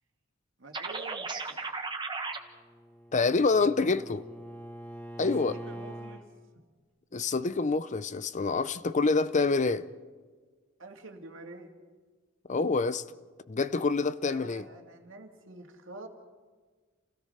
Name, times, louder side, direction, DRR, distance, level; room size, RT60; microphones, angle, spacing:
voice 1, 0.6-1.7 3.6-4.0 5.4-6.2 10.8-11.7 14.2-16.1, right 2 dB, 65° right, 2.5 m, -47 dB
sound 1, 0.7-2.4, right 4 dB, 25° right, 1.4 m, -35 dB
Bowed string instrument, 2.5-6.3, equal, 10° left, 2.2 m, -44 dB
voice 2, 3.1-4.2 5.2-5.6 7.1-9.9 12.5-13.0 13.5-14.6, left 4 dB, 35° left, 0.6 m, -26 dB
29.5 x 17.0 x 5.7 m
head